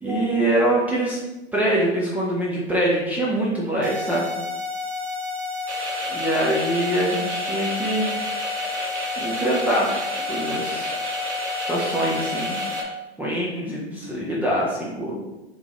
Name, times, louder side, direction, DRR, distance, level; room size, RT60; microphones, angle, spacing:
voice 1, 0.0-1.2 1.5-4.3 6.1-8.2 8.7-10.0 10.3-10.9 11.7-12.6 13.2-15.4, right 1 dB, 5° right, -5 dB, 0.4 m, -24 dB
sound 1, 3.8-12.8, left 4 dB, 65° right, 0.8 m, -30 dB
sound 2, 5.7-12.8, right 1 dB, 85° right, 1.2 m, -32 dB
3.6 x 3.5 x 3.4 m, 1.0 s
hypercardioid pair, 125°, 34 cm